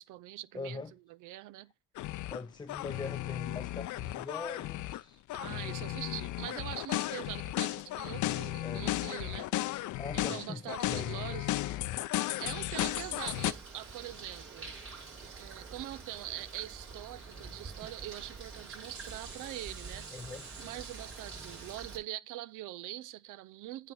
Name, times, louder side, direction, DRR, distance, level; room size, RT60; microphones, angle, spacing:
voice 1, 0.0-0.8 1.1-1.7 2.9-3.2 5.3-9.5 10.1-11.9 12.4-14.8 15.4-20.3 20.6-23.9, right 15 dB, 90° right, 0.5 m, -43 dB
voice 2, 0.5-0.9 2.3-5.2 8.6-8.9 10.0-11.6 11.9-12.0 20.1-20.5, left 3 dB, 15° left, 0.5 m, -42 dB
sound 1, 2.0-2.4 2.7-5.0 5.3-13.5, left 16 dB, 75° left, 0.5 m, -35 dB
Bird, 12.8-22.0, right 4 dB, 45° right, 5.6 m, -47 dB
sound 2, 13.3-14.2 16.0-16.1 17.5-17.6 17.8-18.0 18.6-21.8, right 5 dB, 70° right, 2.8 m, -51 dB
9.3 x 3.4 x 6.0 m
cardioid pair, 90°, 30 cm